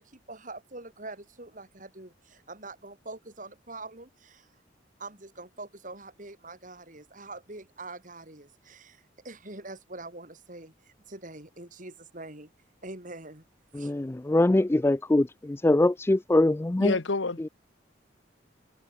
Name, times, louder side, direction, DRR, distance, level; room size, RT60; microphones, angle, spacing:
voice 1, 0.0-4.5 5.0-12.5 12.8-13.4 13.7-13.9, right 2 dB, 45° right, 4.8 m, -44 dB
voice 2, 13.7-16.9 17.4-17.5, left 1 dB, 15° left, 0.3 m, -23 dB
voice 3, 16.8-17.5, left 3 dB, 85° left, 1.4 m, -28 dB
head